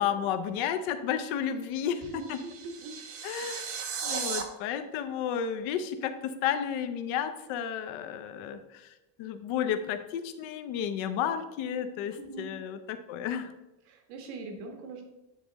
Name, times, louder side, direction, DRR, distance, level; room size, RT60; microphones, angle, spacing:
voice 1, 0.0-2.4 3.2-13.5, left 8 dB, 70° left, 9 dB, 0.8 m, -32 dB
sound 1, 1.7-4.4, right 6 dB, 30° right, 0.4 m, -36 dB
voice 2, 2.0-2.9 12.2-12.5 13.9-15.1, right 3 dB, 90° right, 2 dB, 1.5 m, -42 dB
9.3 x 3.7 x 4.0 m, 0.99 s
cardioid pair, 175°, 50 cm